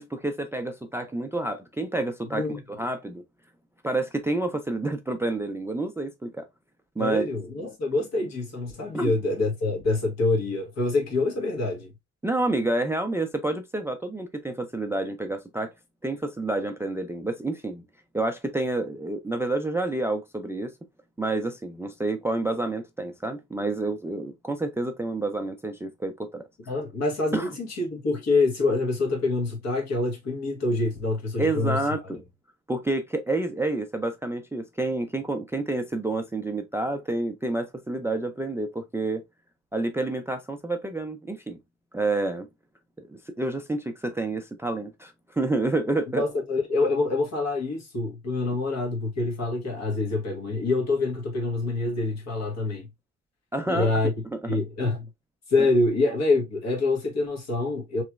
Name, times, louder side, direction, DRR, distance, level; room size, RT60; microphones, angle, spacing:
voice 1, 0.0-2.4 2.8-3.2 3.8-6.5 7.0-7.3 8.9-9.1 12.2-15.7 16.0-17.8 18.1-20.7 21.2-26.4 27.3-27.5 31.4-32.2 32.7-39.2 39.7-41.6 41.9-42.5 43.1-46.2 53.5-53.9 54.3-54.4, right 2 dB, 10° right, 0.3 m, -29 dB
voice 2, 2.3-2.6 7.0-11.9 26.7-31.8 32.0-32.2 46.2-52.9 53.7-54.1 54.5-55.1 55.5-58.0, left 3 dB, 65° left, 1.4 m, -26 dB
3.1 x 2.9 x 2.3 m
cardioid pair, 120°, 29 cm